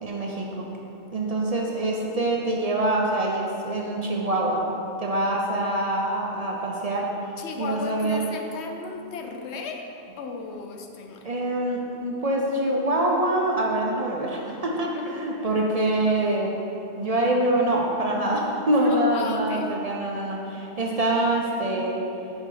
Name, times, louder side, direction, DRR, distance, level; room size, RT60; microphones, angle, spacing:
voice 1, 0.0-0.7 1.1-4.6 5.0-7.1 7.6-8.3 11.2-16.5 17.0-22.0, right 1 dB, 45° right, -1 dB, 0.6 m, -25 dB
voice 2, 7.4-9.9 10.2-11.3 14.8-15.3 18.7-19.7, left 4 dB, 85° left, 4 dB, 0.9 m, -35 dB
6.2 x 5.2 x 3.8 m, 2.8 s
omnidirectional pair, 1.1 m